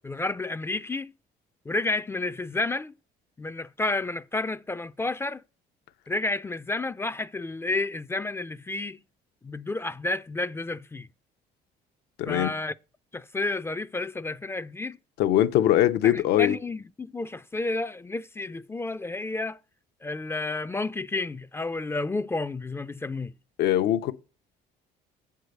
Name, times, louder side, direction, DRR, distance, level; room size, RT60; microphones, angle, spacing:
voice 1, 0.0-1.1 1.7-2.9 3.4-5.4 6.1-9.0 9.4-11.1 12.3-12.7 13.1-15.0 16.0-19.6 20.0-23.3, left 2 dB, 15° left, 0.3 m, -31 dB
voice 2, 12.2-12.5 15.2-16.6 23.6-24.1, left 12 dB, 80° left, 0.7 m, -22 dB
7.7 x 4.7 x 6.6 m
cardioid pair, 110°, 17 cm